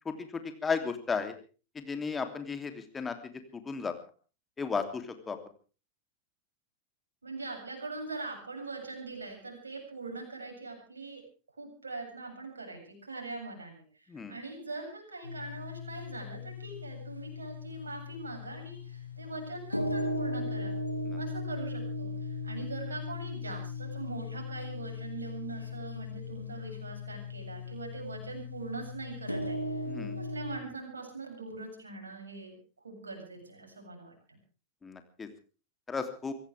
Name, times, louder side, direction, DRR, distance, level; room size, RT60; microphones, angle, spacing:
voice 1, 0.0-1.3 1.7-3.1 3.5-3.9 4.6-5.4 14.1-14.4 21.0-21.2 29.9-30.2 34.8-35.3 35.9-36.3, left 5 dB, 15° left, 7 dB, 3.1 m, -34 dB
voice 2, 7.2-11.2 11.6-13.8 14.3-20.7 21.2-29.8 30.2-32.5 32.8-34.1, right 3 dB, 75° right, 2 dB, 7.7 m, -42 dB
sound 1, 15.2-30.6, left 2 dB, 90° left, 2.3 m, -38 dB
25.0 x 16.5 x 3.5 m, 0.36 s
figure-of-eight pair, 90°, 0 cm